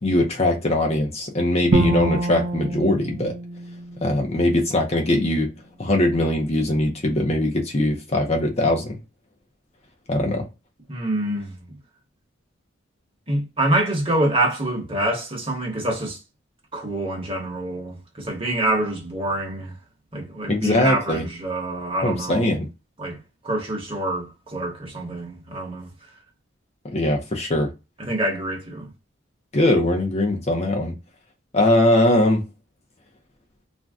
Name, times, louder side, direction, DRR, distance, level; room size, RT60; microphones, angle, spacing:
voice 1, 0.0-3.3 4.0-5.5 5.8-9.0 10.1-10.4 20.5-21.3 22.0-22.7 26.9-27.7 29.5-30.9 31.5-32.4, left 1 dB, 30° left, 0.5 m, -21 dB
Bowed string instrument, 1.7-4.8, right 2 dB, 55° right, 0.4 m, -26 dB
voice 2, 10.9-11.6 13.3-16.2 16.7-19.7 20.1-22.6 23.0-23.2 23.4-25.9 28.0-28.9, right 1 dB, 25° right, 1.0 m, -26 dB
2.5 x 2.1 x 3.4 m
head